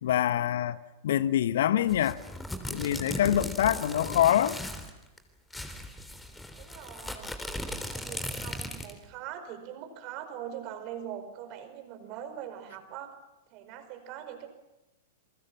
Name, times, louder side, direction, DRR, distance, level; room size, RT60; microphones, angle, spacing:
voice 1, 0.0-2.2 2.7-4.6, left 11 dB, 60° left, 1.3 m, -25 dB
sound 1, 1.9-4.9 5.2-5.3 5.5-9.0, left 1 dB, 5° left, 3.7 m, -37 dB
voice 2, 6.6-7.3 7.8-13.1 13.5-14.5, right 9 dB, 40° right, 5.0 m, -42 dB
28.5 x 23.0 x 7.4 m
figure-of-eight pair, 100°, 0 cm